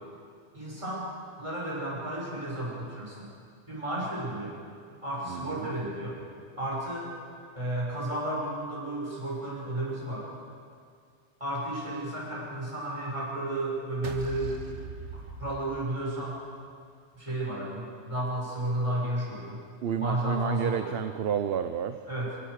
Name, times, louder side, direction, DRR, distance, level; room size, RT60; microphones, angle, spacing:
voice 1, 0.5-1.1 1.4-3.3 3.7-4.6 5.0-6.2 6.6-7.1 7.5-10.3 11.4-14.8 15.1-16.4 17.1-19.6 20.0-21.0 22.1-22.4, right 1 dB, 30° right, -6 dB, 7.2 m, -33 dB
voice 2, 5.3-5.7 19.8-22.0, right 8 dB, 65° right, 10 dB, 0.9 m, -30 dB
sound 1, 14.0-16.4, right 4 dB, 85° right, 1.6 m, -41 dB
28.5 x 16.5 x 6.6 m, 2.2 s
omnidirectional pair, 1.1 m